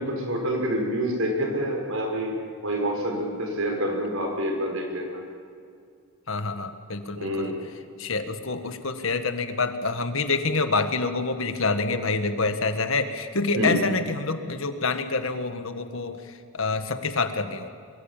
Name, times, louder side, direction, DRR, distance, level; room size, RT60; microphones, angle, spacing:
voice 1, 0.0-2.4 2.6-5.2 7.1-7.6 13.6-13.8, equal, 70° right, 2 dB, 6.0 m, -27 dB
voice 2, 6.3-7.6 8.0-17.7, left 3 dB, 65° left, 8 dB, 1.7 m, -27 dB
23.5 x 23.0 x 7.4 m, 2.3 s
head